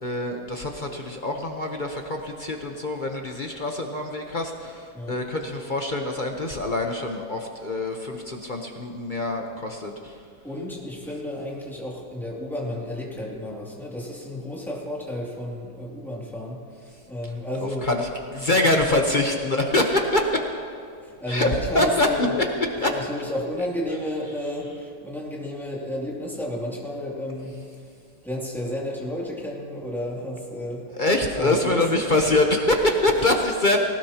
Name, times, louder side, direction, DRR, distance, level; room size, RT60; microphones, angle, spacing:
voice 1, 0.0-10.2 17.8-18.0 18.3-20.4 21.3-21.5 21.7-22.1 22.8-22.9 30.9-33.8, left 2 dB, 40° left, 2 dB, 0.8 m, -24 dB
voice 2, 10.4-17.9 21.0-22.4 22.9-27.6 28.2-30.9 31.3-31.9, left 1 dB, ahead, -5 dB, 2.5 m, -32 dB
19.0 x 18.0 x 2.9 m, 2.4 s
omnidirectional pair, 1.9 m